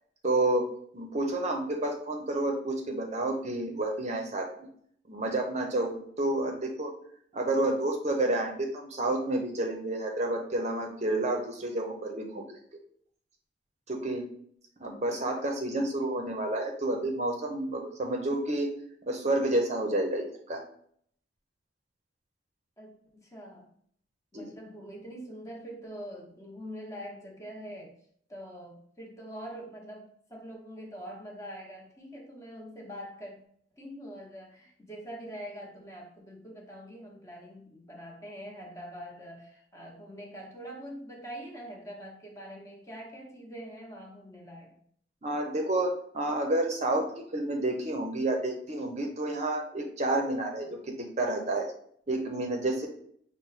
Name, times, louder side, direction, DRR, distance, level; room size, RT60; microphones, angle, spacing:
voice 1, 0.2-0.7 0.9-4.7 5.1-6.9 7.3-12.6 13.9-14.3 14.8-18.7 19.1-20.6 24.3-24.5 45.2-51.7 52.1-52.9, right 2 dB, 40° right, 2 dB, 0.6 m, -30 dB
voice 2, 22.8-23.7 24.3-28.0 28.3-33.4 33.7-44.8, equal, 15° left, -1 dB, 0.9 m, -44 dB
5.9 x 2.1 x 4.0 m, 0.63 s
head